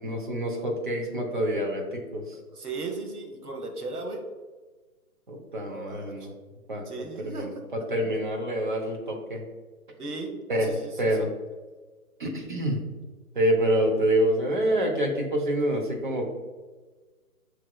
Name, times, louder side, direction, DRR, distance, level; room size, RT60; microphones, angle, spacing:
voice 1, 0.0-2.4 5.3-6.3 6.7-6.8 7.2-9.4 10.5-11.3 12.2-12.8 13.3-16.2, right 1 dB, 35° right, 1 dB, 0.7 m, -27 dB
voice 2, 2.5-4.2 5.7-6.3 6.8-7.6 10.0-11.3, right 3 dB, 85° right, 2 dB, 1.1 m, -37 dB
6.9 x 3.1 x 2.2 m, 1.3 s
hypercardioid pair, 160°, 44 cm